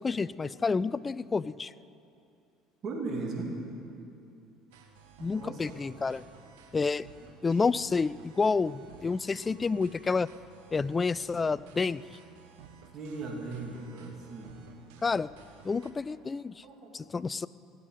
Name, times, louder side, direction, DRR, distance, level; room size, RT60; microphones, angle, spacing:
voice 1, 0.0-1.7 5.2-6.2 6.7-7.1 7.4-10.3 10.7-12.0 15.0-15.3 15.6-16.5 16.9-17.5, left 4 dB, 25° left, 18 dB, 0.3 m, -29 dB
voice 2, 2.8-3.6 5.3-5.8 7.2-7.3 12.9-14.6 16.6-16.9 17.3-17.4, right 3 dB, 45° right, 0 dB, 2.9 m, -38 dB
sound 1, 4.7-15.9, right 6 dB, 85° right, 1.5 m, -54 dB
18.0 x 8.2 x 9.3 m, 2.6 s
supercardioid pair, 90°, 0 cm